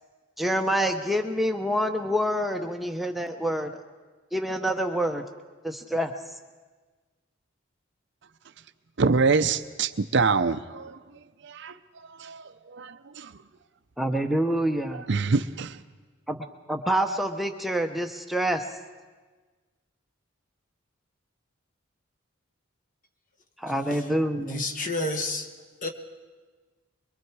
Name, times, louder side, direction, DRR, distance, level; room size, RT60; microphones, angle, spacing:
voice 1, 0.4-3.7 4.3-5.2 5.6-6.1 14.0-15.0 16.3-18.7 23.6-24.6, equal, ahead, 4 dB, 0.7 m, -27 dB
voice 2, 9.0-11.0 11.4-11.7 12.2-12.4 12.7-13.3 15.1-15.8, right 4 dB, 55° right, 11 dB, 0.6 m, -25 dB
voice 3, 24.4-25.5 25.8-25.9, left 2 dB, 40° left, 4 dB, 1.3 m, -30 dB
24.5 x 22.5 x 4.7 m, 1.4 s
head